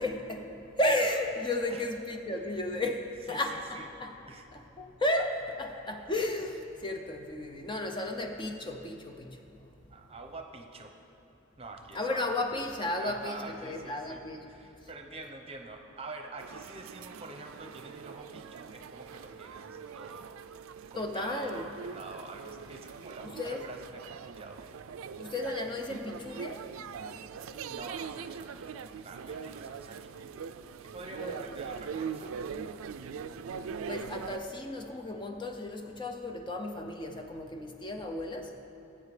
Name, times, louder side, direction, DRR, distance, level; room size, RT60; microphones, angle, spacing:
voice 1, 0.0-4.2 4.5-9.7 11.9-14.5 21.0-21.7 23.2-23.6 25.2-26.7 31.2-31.4 33.9-38.5, left 1 dB, 25° left, 4 dB, 0.5 m, -34 dB
voice 2, 3.3-3.9 4.3-4.4 9.9-10.9 11.6-12.3 13.0-14.2 14.5-20.4 20.9-24.6 27.7-28.8 29.0-30.1 30.8-32.5, right 3 dB, 30° right, 3 dB, 0.9 m, -46 dB
sound 1, 16.4-34.4, right 6 dB, 85° right, 0.4 m, -42 dB
18.5 x 8.2 x 3.3 m, 2.8 s
head